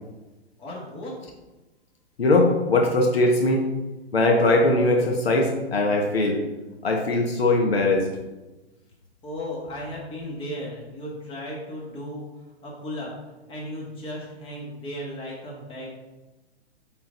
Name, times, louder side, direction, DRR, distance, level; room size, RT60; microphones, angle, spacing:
voice 1, 0.6-1.2 9.2-13.1 13.5-15.9, left 1 dB, 15° left, -3 dB, 1.6 m, -35 dB
voice 2, 2.2-3.7 4.1-6.4 6.8-8.1, left 2 dB, 65° left, 1 dB, 1.2 m, -20 dB
8.6 x 3.9 x 3.9 m, 1.1 s
figure-of-eight pair, 115°, 33 cm